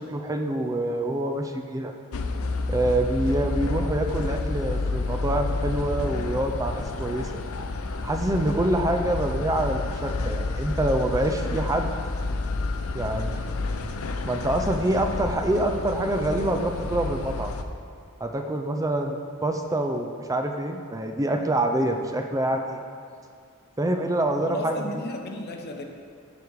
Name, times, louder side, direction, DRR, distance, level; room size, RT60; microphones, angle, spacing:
voice 1, 0.0-1.9 2.7-7.3 8.0-11.9 12.9-13.4 14.2-17.5 18.2-22.8 23.8-25.1, right 1 dB, 15° right, 4 dB, 0.5 m, -26 dB
sound 1, 2.1-17.6, left 3 dB, 70° left, 0.6 m, -30 dB
voice 2, 24.4-25.8, left 1 dB, 45° left, 3 dB, 0.9 m, -34 dB
14.5 x 5.0 x 4.7 m, 2.3 s
head